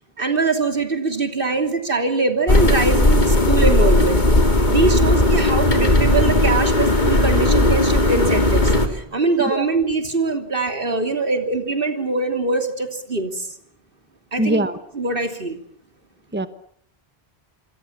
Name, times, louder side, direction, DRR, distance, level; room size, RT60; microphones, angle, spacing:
voice 1, 0.2-4.2 4.7-13.5 14.3-14.7 14.9-15.6, right 3 dB, 60° right, 6 dB, 3.2 m, -23 dB
sound 1, 2.5-8.9, left 1 dB, 45° left, 3.0 m, -16 dB
voice 2, 14.4-14.8 16.3-16.5, right 1 dB, 10° right, 10 dB, 1.1 m, -21 dB
26.5 x 25.5 x 7.3 m, 0.64 s
omnidirectional pair, 1.0 m